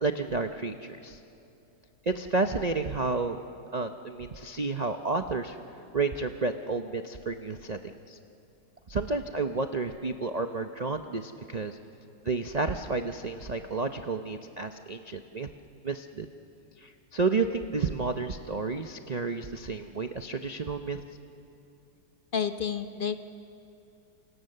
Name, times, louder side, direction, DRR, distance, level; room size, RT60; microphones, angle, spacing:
voice 1, 0.0-1.2 2.1-3.4 3.7-5.6 5.9-8.2 8.9-11.8 12.2-15.5 15.8-16.3 16.8-21.0, right 3 dB, 65° right, 7 dB, 0.4 m, -31 dB
voice 2, 22.3-23.2, left 7 dB, 55° left, 8 dB, 0.5 m, -30 dB
28.5 x 25.5 x 6.7 m, 2.7 s
omnidirectional pair, 1.9 m